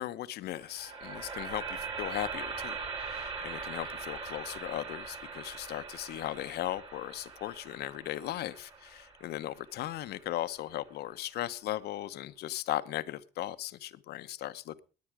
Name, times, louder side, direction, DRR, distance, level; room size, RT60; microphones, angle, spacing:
voice 1, 0.0-14.8, left 14 dB, 70° left, 0.9 m, -37 dB
sound 1, 0.5-10.7, right 5 dB, 35° right, 3.6 m, -41 dB
20.0 x 8.6 x 4.9 m
cardioid pair, 110°, 17 cm